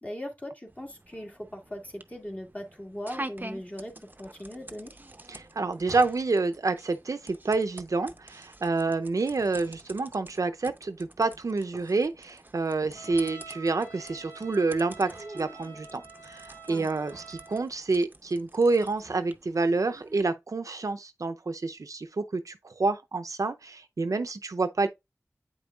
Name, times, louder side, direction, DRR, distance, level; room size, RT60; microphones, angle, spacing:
voice 1, 0.0-4.9 16.7-16.9, equal, 25° left, 2.1 m, -39 dB
sound 1, 0.7-20.2, right 1 dB, 35° right, 0.6 m, -47 dB
voice 2, 5.3-24.9, right 3 dB, 80° right, 0.5 m, -28 dB
Trumpet, 12.9-17.7, right 4 dB, 50° left, 3.0 m, -48 dB
8.5 x 5.3 x 2.3 m
wide cardioid pair, 60°, 6 cm